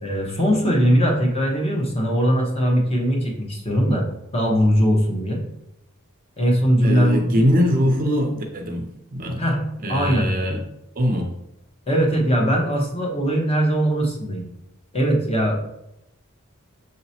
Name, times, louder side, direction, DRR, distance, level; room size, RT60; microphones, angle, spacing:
voice 1, 0.0-4.0 4.3-5.4 6.4-7.5 9.4-9.6 9.9-10.4 11.9-14.4 14.9-15.6, equal, 30° left, 0 dB, 1.0 m, -20 dB
voice 2, 6.8-8.9 9.1-9.4 9.8-10.6 11.0-11.3, equal, 40° right, 2 dB, 0.6 m, -21 dB
6.3 x 2.9 x 2.8 m, 0.85 s
head